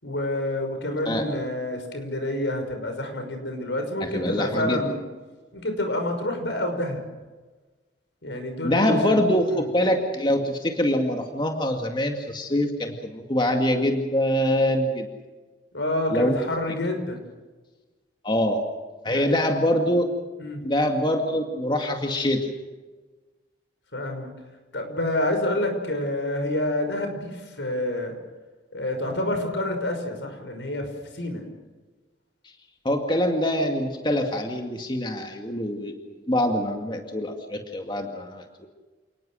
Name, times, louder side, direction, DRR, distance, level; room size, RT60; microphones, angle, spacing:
voice 1, 0.0-5.0 5.5-7.0 8.2-9.2 9.5-9.7 15.7-17.2 19.0-19.3 20.4-20.6 23.9-24.3 24.7-28.2 28.7-30.9 31.1-31.4, left 1 dB, 85° left, 5 dB, 5.8 m, -28 dB
voice 2, 4.0-4.8 8.6-15.1 16.1-16.3 18.2-18.6 19.0-20.0 20.6-22.5 32.8-38.7, left 1 dB, 25° left, 3 dB, 2.2 m, -24 dB
29.0 x 19.0 x 6.5 m, 1.3 s
head